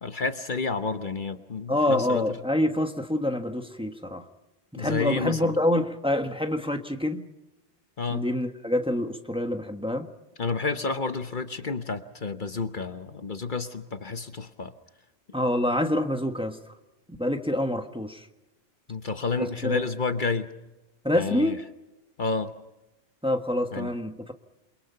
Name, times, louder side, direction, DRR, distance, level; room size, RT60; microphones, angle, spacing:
voice 1, 0.0-2.4 4.7-5.5 8.0-8.3 10.4-14.7 18.9-20.5 21.1-21.6 22.2-22.5 23.7-23.9, left 4 dB, 50° left, 9 dB, 1.2 m, -30 dB
voice 2, 1.7-4.2 4.7-7.3 8.1-10.1 15.3-16.6 17.2-18.3 19.4-19.8 21.0-21.6 23.2-24.3, left 1 dB, 5° right, 6 dB, 1.4 m, -26 dB
29.0 x 23.5 x 5.7 m, 0.99 s
omnidirectional pair, 1.0 m